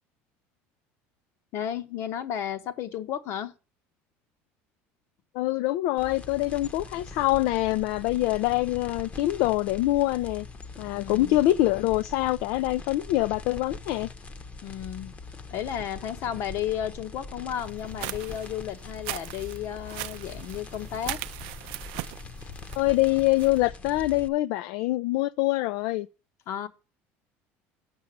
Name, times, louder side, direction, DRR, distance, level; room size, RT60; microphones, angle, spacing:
voice 1, 1.5-3.5 10.9-11.4 14.6-15.1 15.5-21.2 26.5-26.7, left 10 dB, 55° left, 1.0 m, -33 dB
voice 2, 5.3-10.5 10.8-14.1 22.8-26.1, left 17 dB, 75° left, 0.4 m, -25 dB
sound 1, 6.0-24.3, left 3 dB, 25° left, 0.8 m, -42 dB
sound 2, 17.7-23.6, right 20 dB, 85° right, 0.4 m, -39 dB
7.4 x 5.8 x 7.3 m
cardioid pair, 130°, 5 cm